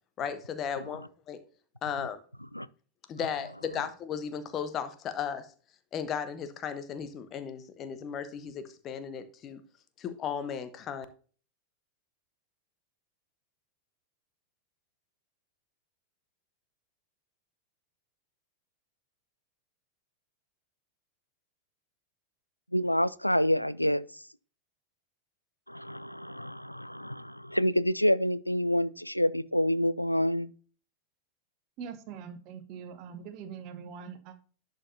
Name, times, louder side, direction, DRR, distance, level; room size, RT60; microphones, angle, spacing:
voice 1, 0.2-1.4 1.8-2.2 3.1-5.5 5.9-9.6 10.0-11.1, left 7 dB, 30° left, 1.1 m, -35 dB
voice 2, 22.7-24.1 25.7-30.5, equal, 90° left, 0.3 m, -27 dB
voice 3, 31.8-34.4, right 7 dB, 40° right, 1.2 m, -43 dB
11.0 x 5.3 x 2.7 m
figure-of-eight pair, 90°, 0 cm